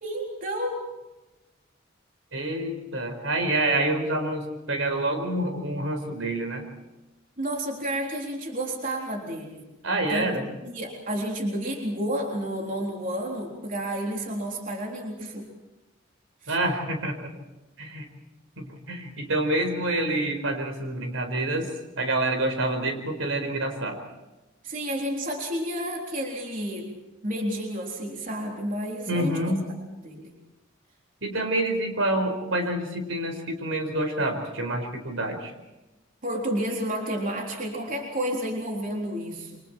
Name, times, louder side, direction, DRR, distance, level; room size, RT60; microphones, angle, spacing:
voice 1, 0.0-0.8 7.4-9.7 10.1-15.5 16.4-16.6 24.6-26.9 27.2-29.5 30.0-30.3 36.2-39.6, equal, 40° right, 0 dB, 3.8 m, -31 dB
voice 2, 2.3-6.6 9.8-10.4 16.5-17.3 17.8-18.1 18.6-24.0 29.1-29.6 31.2-35.5, right 1 dB, 80° right, 4 dB, 5.1 m, -27 dB
28.5 x 25.5 x 4.6 m, 1.0 s
head